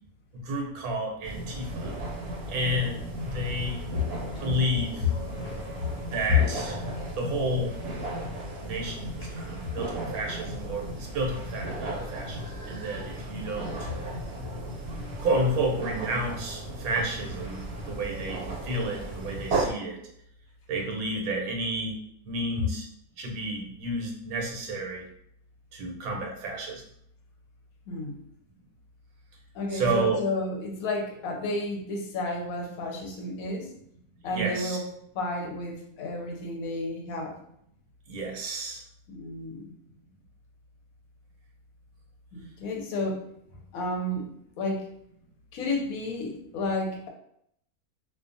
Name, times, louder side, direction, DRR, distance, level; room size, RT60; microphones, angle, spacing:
voice 1, 0.3-1.9 2.5-3.8 4.4-5.0 6.1-6.8 7.2-7.7 8.6-13.7 15.2-20.1 20.7-21.9 22.2-22.9 23.2-25.1 25.7-26.8 29.7-30.2 34.3-34.8 38.1-38.8, right 1 dB, 75° right, 1 dB, 1.1 m, -31 dB
sound 1, 1.2-19.7, right 1 dB, 55° right, 0.8 m, -35 dB
voice 2, 5.0-7.2 9.2-9.3 9.6-9.7 22.6-22.7 27.9-28.2 29.5-33.7 34.2-34.9 35.1-37.4 39.1-39.7 42.3-43.3 43.7-44.9 45.5-47.1, left 3 dB, 70° left, 1 dB, 1.0 m, -31 dB
2.5 x 2.3 x 2.5 m, 0.71 s
omnidirectional pair, 1.6 m